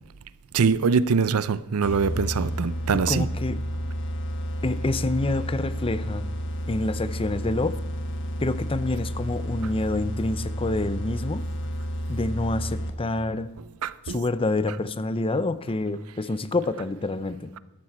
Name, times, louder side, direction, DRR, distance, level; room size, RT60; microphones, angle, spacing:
voice 1, 0.5-3.3 13.8-14.2, right 5 dB, 85° right, 16 dB, 0.5 m, -23 dB
sound 1, 1.8-13.2, equal, 60° left, 1.3 m, -31 dB
voice 2, 2.9-3.6 4.6-6.2 6.7-7.8 8.4-11.4 12.1-13.5 14.1-17.5, left 2 dB, 25° left, 14 dB, 0.6 m, -27 dB
13.0 x 12.0 x 4.2 m, 1.1 s
head